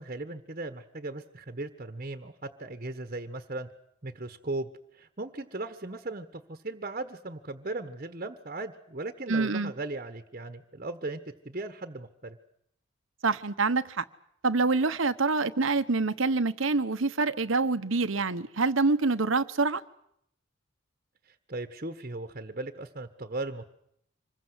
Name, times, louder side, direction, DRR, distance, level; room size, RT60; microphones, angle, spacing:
voice 1, 0.0-3.7 4.0-11.2 11.4-12.4 21.3-23.6, right 2 dB, 40° right, 6 dB, 1.4 m, -37 dB
voice 2, 9.3-9.7 13.2-14.0 14.4-19.8, right 3 dB, 85° right, 11 dB, 1.1 m, -26 dB
26.0 x 21.5 x 8.1 m, 0.71 s
head